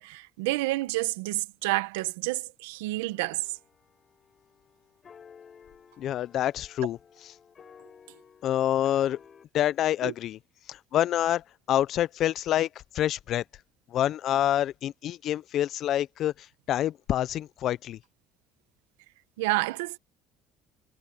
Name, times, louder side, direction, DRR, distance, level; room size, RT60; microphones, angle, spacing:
voice 1, 0.0-3.4 10.0-10.1 19.4-20.0, right 20 dB, 90° right, 1.4 m, -29 dB
sound 1, 3.1-9.4, left 7 dB, 40° left, 7.2 m, -55 dB
voice 2, 6.0-7.3 8.4-9.2 9.5-10.4 10.7-12.7 12.9-13.4 13.9-18.0, left 12 dB, 60° left, 0.8 m, -27 dB
supercardioid pair, 80°, 0 cm